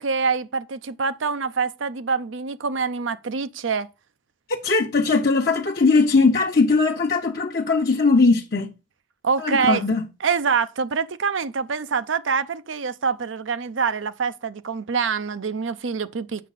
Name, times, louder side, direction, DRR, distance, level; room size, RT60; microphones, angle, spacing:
voice 1, 0.0-3.9 9.2-9.8 10.2-16.5, right 5 dB, 80° right, 0.6 m, -25 dB
voice 2, 4.5-8.7 9.4-10.0, left 3 dB, 55° left, 0.9 m, -20 dB
8.5 x 6.4 x 4.1 m
head